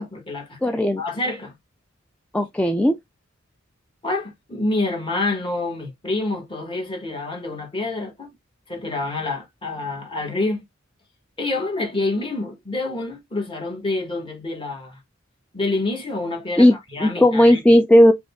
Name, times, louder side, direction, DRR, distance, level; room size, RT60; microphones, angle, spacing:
voice 1, 0.0-1.5 4.0-8.3 8.7-10.6 11.4-15.0 15.5-17.6, left 2 dB, 25° left, 1.6 m, -27 dB
voice 2, 0.6-1.0 2.3-2.9 16.6-16.7 17.0-18.1, left 1 dB, 5° left, 0.3 m, -15 dB
5.1 x 2.3 x 3.5 m
head